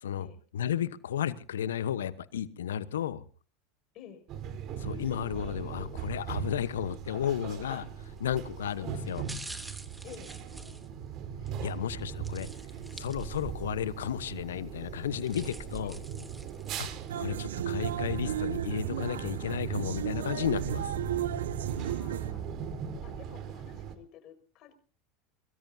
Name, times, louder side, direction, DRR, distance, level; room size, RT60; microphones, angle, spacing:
voice 1, 0.5-3.2 4.8-9.2 11.6-12.5 13.0-15.9 16.8-16.9 17.1-20.9, left 9 dB, 80° left, 15 dB, 1.0 m, -33 dB
voice 2, 3.9-4.3 8.8-8.9 10.0-10.3 15.8-16.1 21.8-22.5 23.0-24.7, left 10 dB, 50° left, 7 dB, 5.7 m, -50 dB
sound 1, 4.3-23.9, right 8 dB, 45° right, 4.0 m, -39 dB
sound 2, 8.0-8.3 9.0-11.5 12.2-13.7 14.1-14.2 15.0-17.1 17.6-17.7, right 2 dB, 10° right, 2.9 m, -47 dB
sound 3, 17.1-22.3, right 11 dB, 75° right, 0.8 m, -34 dB
23.0 x 22.5 x 2.8 m, 0.40 s
hypercardioid pair, 85°, 0 cm